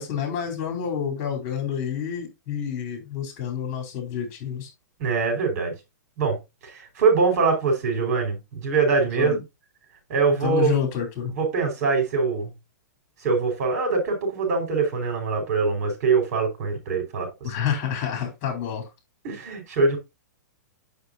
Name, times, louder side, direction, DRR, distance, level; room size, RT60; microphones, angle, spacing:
voice 1, 0.0-4.7 9.2-9.4 10.4-11.3 17.4-18.8, left 8 dB, 40° left, 4.2 m, -28 dB
voice 2, 5.0-5.7 6.2-9.3 10.1-10.7 11.4-12.5 13.2-17.5 19.2-20.0, right 4 dB, 55° right, 5.2 m, -23 dB
7.9 x 6.7 x 2.7 m
hypercardioid pair, 140°, 9 cm